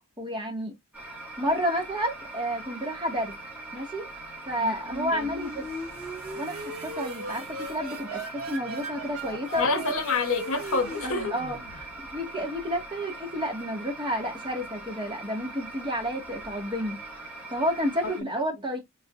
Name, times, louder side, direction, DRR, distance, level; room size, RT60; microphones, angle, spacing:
voice 1, 0.2-0.7 1.4-3.3 3.7-4.1 4.5-5.7 6.4-9.7 11.0-17.0 17.5-18.8, equal, 25° right, 1.8 m, -30 dB
sound 1, 0.9-18.2, right 2 dB, 5° right, 2.2 m, -42 dB
sound 2, 4.6-12.2, right 1 dB, 70° right, 1.5 m, -38 dB
voice 2, 9.6-11.3 18.0-18.3, left 3 dB, 70° left, 1.2 m, -27 dB
5.3 x 4.0 x 2.5 m
head